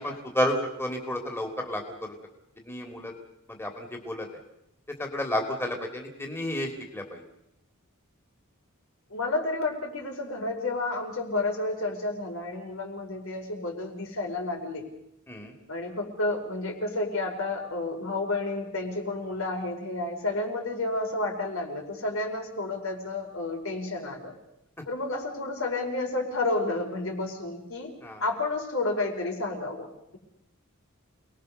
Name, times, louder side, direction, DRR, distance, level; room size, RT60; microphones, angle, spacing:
voice 1, 0.0-2.1 2.6-3.1 3.5-4.3 5.0-7.2 15.3-15.5 28.0-28.2, left 1 dB, 10° left, 2 dB, 3.0 m, -31 dB
voice 2, 9.1-14.8 15.7-24.3 24.9-27.9 28.2-30.2, left 2 dB, 70° left, 2 dB, 5.1 m, -31 dB
28.5 x 20.0 x 6.8 m, 0.83 s
head